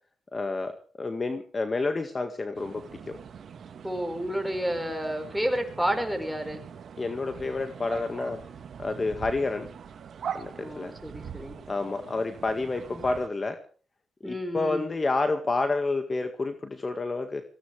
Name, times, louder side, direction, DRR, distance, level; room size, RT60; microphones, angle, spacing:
voice 1, 0.3-3.2 7.0-8.4 8.8-9.7 10.3-10.9 11.7-13.6 14.2-17.4, left 3 dB, 35° left, 7 dB, 1.8 m, -29 dB
sound 1, 2.5-13.3, right 7 dB, 65° right, 1.6 m, -42 dB
voice 2, 3.8-6.6 10.6-11.6 12.9-13.0 14.2-14.9, equal, ahead, 5 dB, 5.1 m, -30 dB
22.5 x 17.0 x 3.4 m, 0.41 s
cardioid pair, 80°, 0 cm